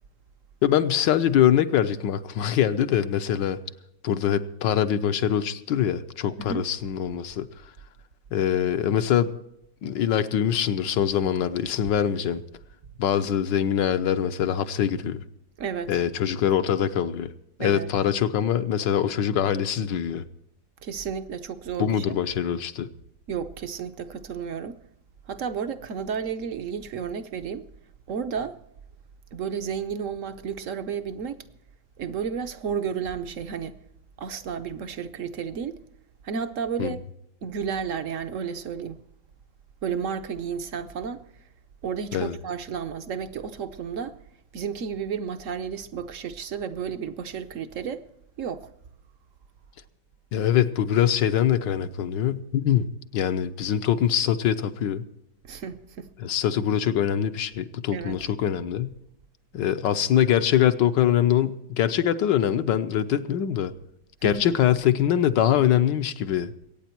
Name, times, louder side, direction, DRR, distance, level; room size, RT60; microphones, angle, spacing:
voice 1, 0.6-3.6 4.0-7.5 8.3-9.3 9.8-12.4 13.0-15.2 15.9-17.3 17.6-20.2 21.8-22.9 36.8-36.9 42.1-42.4 50.3-55.0 56.2-59.0 59.5-63.7 64.2-66.5, left 10 dB, 75° left, 1.4 m, -23 dB
voice 2, 15.6-16.0 17.6-17.9 20.8-22.0 23.3-24.8 25.3-27.7 28.1-28.6 29.3-31.5 32.0-33.8 34.2-35.8 36.2-37.0 37.4-39.0 39.8-41.2 41.8-44.2 44.5-48.0 48.4-48.7 55.4-56.1 57.9-58.2 64.2-64.5, right 7 dB, 60° right, 0.9 m, -32 dB
22.5 x 9.3 x 4.5 m
omnidirectional pair, 2.0 m